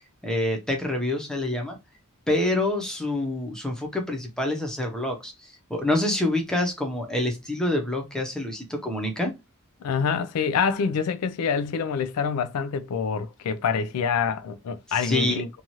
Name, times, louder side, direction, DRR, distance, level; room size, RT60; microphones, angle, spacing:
voice 1, 0.2-1.8 2.3-9.3 15.0-15.4, left 1 dB, 5° left, 0.7 m, -27 dB
voice 2, 9.8-15.5, left 6 dB, 85° left, 0.4 m, -26 dB
2.7 x 2.4 x 2.9 m
head